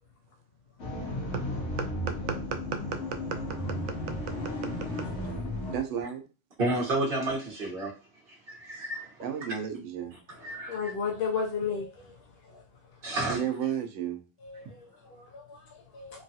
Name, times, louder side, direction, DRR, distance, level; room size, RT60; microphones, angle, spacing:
sound 1, 0.8-5.8, left 1 dB, 85° left, 1.1 m, -34 dB
voice 1, 5.7-6.2 9.2-10.1 13.2-14.2, right 8 dB, 85° right, 0.9 m, -32 dB
voice 2, 6.6-7.9 8.3-9.5 10.3-10.9 13.0-13.4, right 2 dB, 55° right, 1.1 m, -31 dB
voice 3, 10.3-12.1 12.5-12.6 14.4-16.2, left 6 dB, 65° left, 0.7 m, -34 dB
3.1 x 2.3 x 2.7 m
omnidirectional pair, 1.2 m